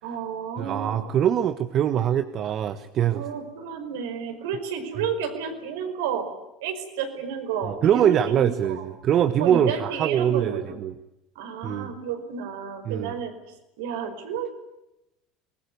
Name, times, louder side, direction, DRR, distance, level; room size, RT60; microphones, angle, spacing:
voice 1, 0.0-1.2 3.1-6.3 6.6-8.8 9.4-10.8 11.4-13.4 13.8-14.5, right 7 dB, 75° right, 7 dB, 5.1 m, -31 dB
voice 2, 0.6-3.2 7.6-10.9 11.6-11.9 12.8-13.1, right 9 dB, 50° right, 10 dB, 1.3 m, -23 dB
24.5 x 20.5 x 9.5 m, 0.91 s
hypercardioid pair, 75°, 0 cm